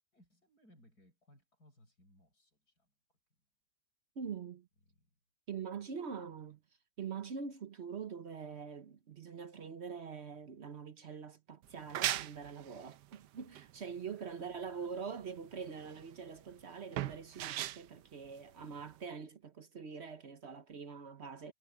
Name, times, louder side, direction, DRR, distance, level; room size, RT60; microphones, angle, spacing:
voice 1, 0.1-3.2 4.9-5.2 6.2-6.5 14.1-15.0 18.6-18.8, equal, 70° left, 7.7 m, -66 dB
voice 2, 4.2-4.7 5.5-6.6 7.0-21.5, right 6 dB, 50° right, 1.1 m, -44 dB
sound 1, 11.6-19.1, right 13 dB, 85° right, 1.3 m, -40 dB
omnidirectional pair, 1.7 m